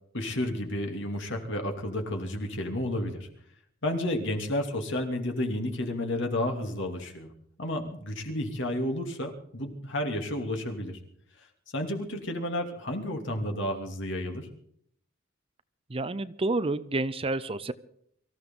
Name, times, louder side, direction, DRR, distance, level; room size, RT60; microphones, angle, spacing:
voice 1, 0.1-3.3 3.8-7.3 7.6-11.0 11.4-14.5, left 1 dB, 65° left, 4 dB, 3.0 m, -31 dB
voice 2, 15.9-17.7, right 2 dB, 30° right, 14 dB, 0.6 m, -29 dB
24.5 x 15.0 x 3.9 m, 0.66 s
head